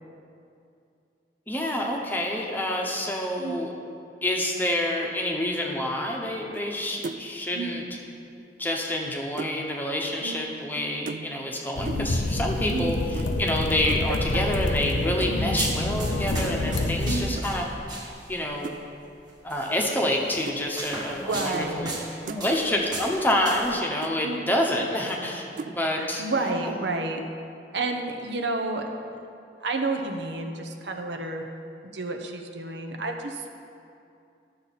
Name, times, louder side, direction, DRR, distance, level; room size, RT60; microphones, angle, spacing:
voice 1, 1.5-3.7 4.2-7.8 8.6-17.6 18.3-18.8 19.4-21.9 22.4-26.7, left 1 dB, 10° left, 0 dB, 0.9 m, -28 dB
sound 1, 6.5-6.8 7.0-7.4 8.6-9.6 11.1-11.5 11.8-12.2 13.1-13.3 13.9-14.1 15.2-15.5 17.3-17.5 18.6-18.8 19.9-20.1 20.5-20.6 21.5-21.7 22.0-22.4 23.3-23.4 23.7-23.8 24.0-24.2 25.6-25.8, right 4 dB, 45° right, 0.3 m, -37 dB
sound 2, 11.8-17.3, left 2 dB, 80° left, 0.7 m, -27 dB
sound 3, 15.6-18.5 19.5-19.7 20.3-23.8, right 2 dB, 25° right, 1.4 m, -36 dB
voice 2, 21.1-22.6 24.2-24.4 25.9-27.2 27.7-28.9 29.6-31.4 31.9-33.5, right 3 dB, 70° right, 4 dB, 0.8 m, -31 dB
12.0 x 6.8 x 4.1 m, 2.5 s
head